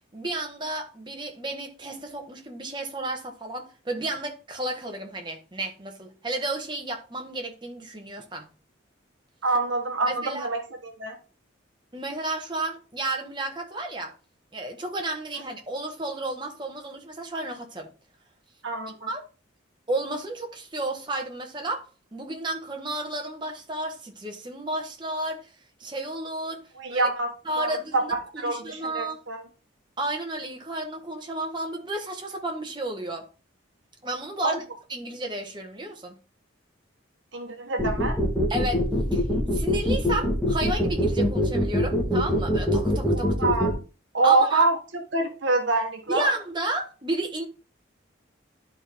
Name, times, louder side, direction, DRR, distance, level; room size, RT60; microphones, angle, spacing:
voice 1, 0.1-8.5 10.1-10.5 11.9-14.1 14.5-17.9 19.1-19.2 19.9-25.5 25.8-26.6 26.9-27.1 27.4-29.2 30.0-33.3 34.0-34.6 34.9-36.2 38.5-39.2 39.5-43.3 44.2-44.7 46.1-47.5, right 1 dB, 20° right, 1.4 m, -32 dB
voice 2, 9.4-11.2 18.6-18.9 26.8-27.3 27.6-29.4 34.4-34.6 37.3-38.2 43.2-43.7 44.1-46.3, right 3 dB, 65° right, 1.3 m, -25 dB
sound 1, 37.8-43.7, left 1 dB, 5° left, 1.5 m, -23 dB
11.5 x 4.3 x 3.5 m
head